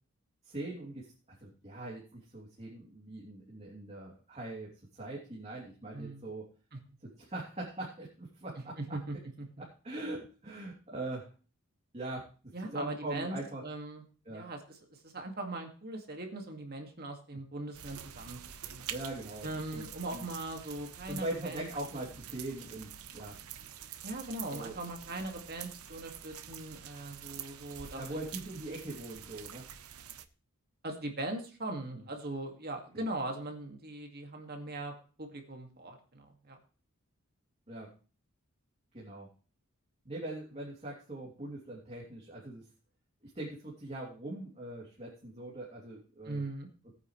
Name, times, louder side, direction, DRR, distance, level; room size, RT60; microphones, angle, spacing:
voice 1, 0.4-1.1 1.4-6.5 7.2-8.8 9.6-11.3 11.9-12.2 12.7-13.6 14.2-14.4 18.9-19.9 20.1-20.3 21.1-23.3 24.5-24.7 27.9-29.6 31.9-32.0 32.9-33.1 37.7-37.9 38.9-39.3 40.0-42.6 43.2-46.5, right 2 dB, 30° right, -4 dB, 3.0 m, -41 dB
voice 2, 8.8-9.1 12.5-14.0 14.3-18.4 18.7-18.9 19.4-21.7 24.0-28.2 30.8-34.9 35.2-36.6 46.2-46.7, right 2 dB, 45° right, 3 dB, 2.2 m, -40 dB
sound 1, 17.7-30.3, right 9 dB, 85° right, 0.9 m, -47 dB
18.5 x 9.3 x 3.3 m, 0.38 s
head